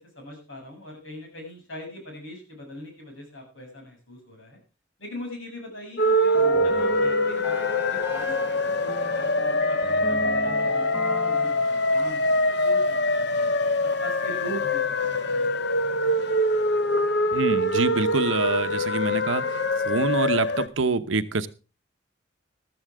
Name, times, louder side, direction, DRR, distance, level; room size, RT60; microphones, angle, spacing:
voice 1, 0.2-4.6 5.0-10.9 11.3-13.5 13.8-14.8 15.1-15.5, equal, 75° left, 2 dB, 7.5 m, -41 dB
sound 1, 6.0-20.7, left 1 dB, 55° left, 0.8 m, -24 dB
sound 2, 6.3-12.0, right 2 dB, 10° right, 1.8 m, -36 dB
voice 2, 17.3-19.4 19.9-21.5, right 3 dB, 75° right, 12 dB, 0.9 m, -25 dB
14.5 x 13.5 x 3.6 m, 0.33 s
head